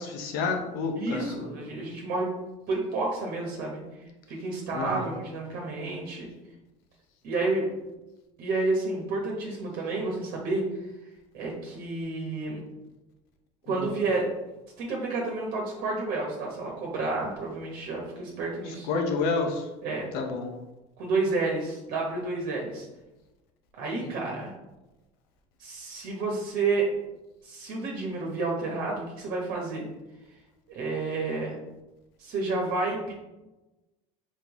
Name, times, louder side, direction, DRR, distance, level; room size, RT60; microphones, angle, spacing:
voice 1, 0.0-1.4 4.7-5.1 13.7-13.9 18.9-19.6 20.1-20.5 24.0-24.1, left 4 dB, 75° left, 4 dB, 0.9 m, -29 dB
voice 2, 1.0-2.3 2.7-3.8 4.3-6.3 7.2-7.7 8.4-10.6 11.3-12.6 13.7-14.3 14.8-18.9 19.8-20.1 21.0-22.9 23.7-24.5 25.6-26.9 27.4-29.9 30.7-31.5 32.2-33.1, right 3 dB, 65° right, -2 dB, 1.1 m, -30 dB
4.2 x 3.8 x 3.0 m, 1.0 s
supercardioid pair, 90°, 16 cm